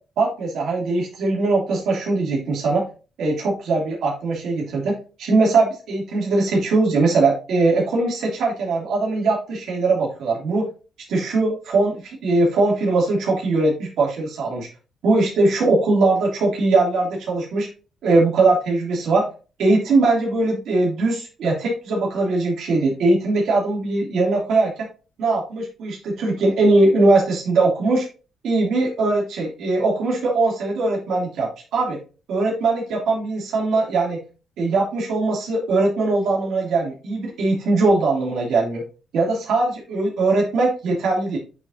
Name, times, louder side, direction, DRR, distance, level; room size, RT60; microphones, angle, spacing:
voice 1, 0.2-2.8 3.2-4.9 5.2-10.7 11.1-14.7 15.0-17.7 18.0-19.2 19.6-24.7 25.2-28.1 28.4-32.0 32.3-34.2 34.6-38.8 39.1-41.4, right 3 dB, 75° right, -3 dB, 2.7 m, -20 dB
8.9 x 4.5 x 2.7 m, 0.34 s
cardioid pair, 90°, 0 cm